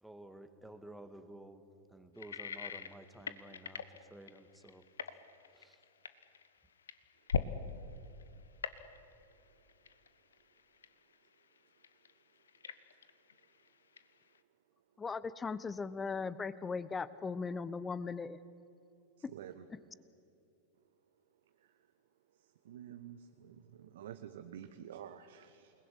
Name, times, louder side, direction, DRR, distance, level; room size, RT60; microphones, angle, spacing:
voice 1, 0.0-4.9 5.1-5.2 5.5-5.8, right 1 dB, 5° right, 9 dB, 1.9 m, -53 dB
sound 1, 2.2-7.7 8.0-8.3 8.6-9.3 9.7-11.6 11.8-13.7 14.0-14.4, left 7 dB, 70° left, 1.2 m, -40 dB
voice 2, 15.0-18.4 19.7-19.8, left 5 dB, 15° left, 17 dB, 1.0 m, -38 dB
voice 3, 19.3-19.6 22.6-25.7, right 10 dB, 60° right, 8 dB, 1.2 m, -49 dB
28.5 x 20.5 x 9.6 m, 2.7 s
figure-of-eight pair, 90°, 0 cm